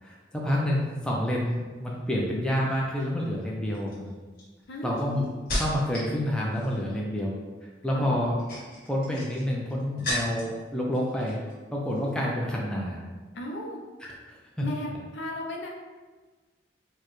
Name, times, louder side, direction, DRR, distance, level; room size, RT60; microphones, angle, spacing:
voice 1, 0.0-4.1 4.8-5.2 5.5-7.3 7.8-8.4 8.9-11.4 11.7-13.0 14.0-14.7, equal, 5° left, -3 dB, 0.4 m, -28 dB
sound 1, 2.7-3.0 3.7-6.1 6.4-6.9 8.2-10.6 10.9-11.6 11.9-12.1, left 1 dB, 50° left, 1.2 m, -35 dB
voice 2, 13.3-13.8 14.6-15.7, left 1 dB, 75° left, 0 dB, 0.6 m, -35 dB
4.6 x 2.2 x 3.0 m, 1.3 s
head